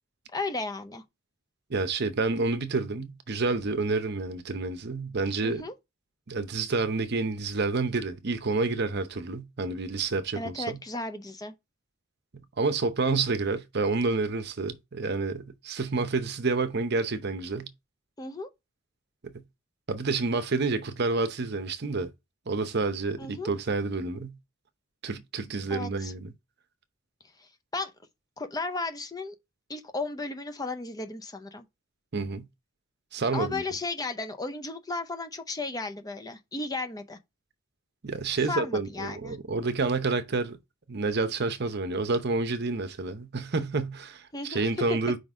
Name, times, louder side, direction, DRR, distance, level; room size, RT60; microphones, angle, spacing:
voice 1, 0.3-1.0 5.4-5.7 10.4-11.5 18.2-18.5 23.2-23.5 25.7-26.1 27.7-27.9 28.4-29.3 29.7-31.6 33.3-37.2 38.5-39.4 44.3-44.7, left 3 dB, 20° left, 0.6 m, -34 dB
voice 2, 1.7-5.6 6.3-10.8 12.6-17.7 19.2-19.3 19.9-22.1 22.5-24.4 25.0-26.3 32.1-32.5 33.1-33.6 38.0-40.6 40.9-45.2, right 3 dB, 50° right, 0.7 m, -29 dB
5.0 x 3.9 x 4.8 m
head